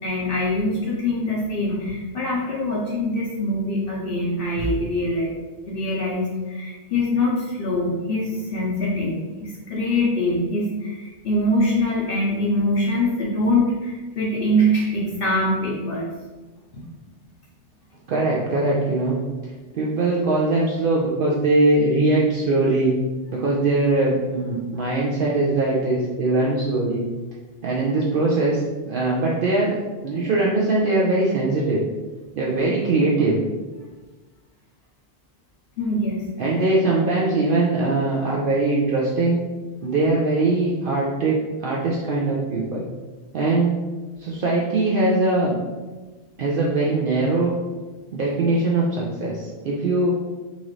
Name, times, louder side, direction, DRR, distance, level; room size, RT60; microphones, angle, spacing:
voice 1, 0.0-5.3 5.7-16.1 16.7-16.8 35.8-36.6, left 1 dB, 60° left, -5 dB, 0.9 m, -23 dB
voice 2, 18.1-19.2 19.7-22.9 23.3-27.0 27.6-29.8 30.0-31.8 32.4-33.4 36.4-39.4 39.8-42.9 43.3-43.8 44.2-45.6 46.4-47.5 48.1-50.2, right 2 dB, 60° right, -4 dB, 0.7 m, -21 dB
4.1 x 2.5 x 3.1 m, 1.3 s
omnidirectional pair, 1.1 m